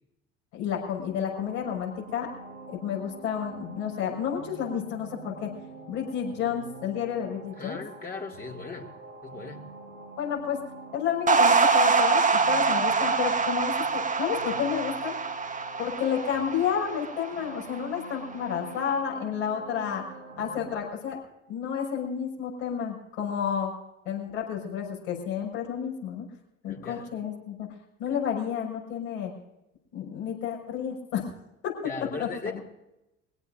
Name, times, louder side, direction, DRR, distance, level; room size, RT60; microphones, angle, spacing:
voice 1, 0.5-2.3 2.7-5.5 5.9-7.8 10.2-10.6 10.9-15.2 15.8-20.0 20.4-21.2 21.5-23.7 24.0-26.2 26.6-27.7 28.0-29.3 29.9-31.2 31.6-31.7 32.2-32.3, left 8 dB, 60° left, -2 dB, 5.8 m, -30 dB
sound 1, 1.3-20.8, right 4 dB, 80° right, 2.4 m, -46 dB
voice 2, 7.5-8.9 9.2-9.7 26.7-27.1 31.8-32.6, left 4 dB, 25° left, 1 dB, 2.8 m, -38 dB
sound 2, 11.3-17.8, right 4 dB, 20° right, 1.6 m, -24 dB
23.5 x 17.5 x 2.6 m, 0.91 s
figure-of-eight pair, 60°, 38 cm